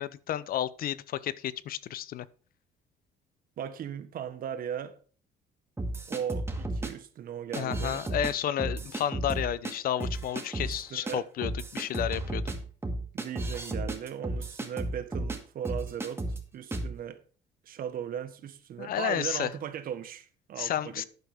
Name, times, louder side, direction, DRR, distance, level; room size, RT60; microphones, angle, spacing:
voice 1, 0.0-2.3 7.6-12.5 18.8-19.5 20.6-21.0, left 11 dB, 60° left, 0.7 m, -31 dB
voice 2, 3.6-5.0 6.1-8.0 10.6-11.2 13.1-17.2 17.6-21.0, right 9 dB, 60° right, 1.4 m, -37 dB
sound 1, 5.8-6.9 7.5-8.3 8.6-9.7 10.0-10.7 11.1-11.2 11.4-15.4 15.6-16.4 16.7-16.9, right 2 dB, 15° right, 2.1 m, -33 dB
11.5 x 9.2 x 3.6 m
cardioid pair, 110°, 17 cm